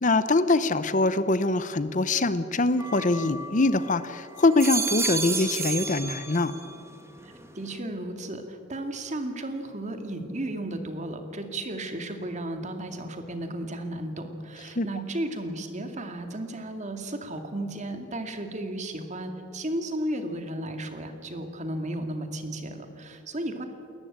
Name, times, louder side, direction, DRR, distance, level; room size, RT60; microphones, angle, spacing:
voice 1, 0.0-6.5 14.8-14.9, left 2 dB, 40° left, 13 dB, 0.7 m, -23 dB
sound 1, 2.8-3.9 4.4-6.8 7.2-7.8, right 4 dB, 15° right, 1.4 m, -32 dB
voice 2, 7.2-23.7, right 1 dB, 35° right, 6 dB, 2.2 m, -34 dB
29.0 x 14.0 x 8.9 m, 2.6 s
head